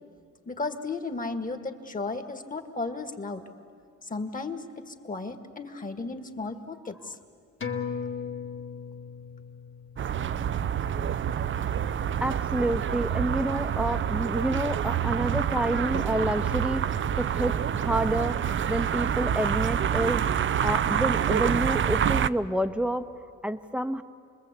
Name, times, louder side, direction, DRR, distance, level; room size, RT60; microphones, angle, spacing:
voice 1, 0.5-3.4 4.0-7.2, left 3 dB, 25° left, 7 dB, 1.9 m, -34 dB
sound 1, 7.6-12.5 12.9-13.0, left 6 dB, 40° left, 2.1 m, -38 dB
sound 2, 10.0-22.3, right 9 dB, 40° right, 0.6 m, -27 dB
voice 2, 12.2-20.2 20.6-23.1 23.4-24.0, right 1 dB, 5° right, 10 dB, 1.0 m, -29 dB
28.0 x 21.0 x 8.3 m, 2.2 s
cardioid pair, 90°, 30 cm